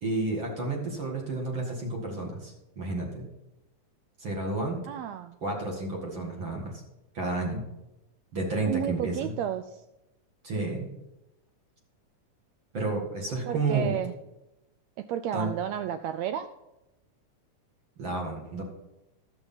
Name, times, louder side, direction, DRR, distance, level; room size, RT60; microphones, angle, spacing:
voice 1, 0.0-3.3 4.2-4.8 5.4-6.7 7.1-7.6 8.3-9.3 10.4-10.9 12.7-14.0 15.3-15.5 18.0-18.6, right 3 dB, 40° right, -1 dB, 2.5 m, -31 dB
voice 2, 4.9-5.4 8.7-9.8 13.4-14.1 15.1-16.5, right 10 dB, 90° right, 10 dB, 1.5 m, -31 dB
11.5 x 8.0 x 5.6 m, 0.94 s
omnidirectional pair, 3.6 m